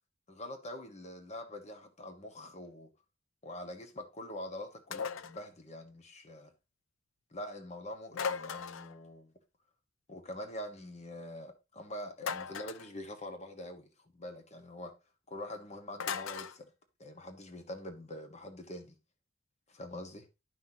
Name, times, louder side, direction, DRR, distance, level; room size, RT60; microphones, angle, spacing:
voice 1, 0.3-2.9 3.4-6.5 7.3-9.3 10.1-14.9 15.3-16.7 17.0-19.0 19.7-20.3, left 1 dB, 35° left, 1.3 m, -44 dB
sound 1, 4.9-5.4 8.1-9.0 12.2-12.9 16.0-16.6, left 6 dB, 90° left, 0.5 m, -37 dB
11.5 x 5.8 x 2.8 m
head